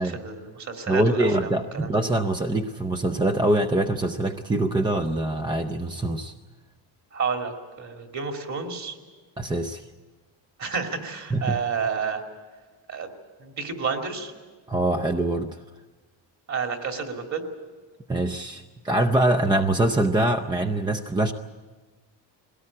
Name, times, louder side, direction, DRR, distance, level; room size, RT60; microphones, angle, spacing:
voice 1, 0.0-1.9 7.1-9.0 10.6-12.2 12.9-13.1 13.4-14.3 16.5-17.4, right 5 dB, 40° right, 3 dB, 2.7 m, -30 dB
voice 2, 0.9-6.3 9.4-9.8 11.3-11.6 14.7-15.6 18.1-21.3, right 1 dB, 10° right, 6 dB, 0.6 m, -24 dB
21.0 x 18.0 x 8.6 m, 1.3 s
cardioid pair, 140°, 44 cm